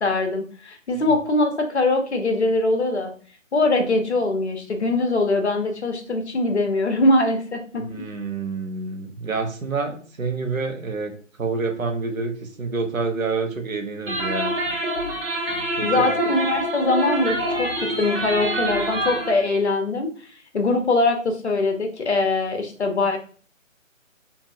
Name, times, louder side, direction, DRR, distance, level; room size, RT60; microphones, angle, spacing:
voice 1, 0.0-3.1 3.5-7.9 15.8-20.1 20.5-23.2, left 2 dB, 55° left, 4 dB, 0.9 m, -22 dB
voice 2, 7.8-11.1 11.4-14.5 15.8-16.1, right 4 dB, 85° right, 4 dB, 1.0 m, -28 dB
sound 1, 14.1-19.4, right 1 dB, 45° right, 1.2 m, -26 dB
4.5 x 2.7 x 2.5 m, 0.43 s
figure-of-eight pair, 155°, 40 cm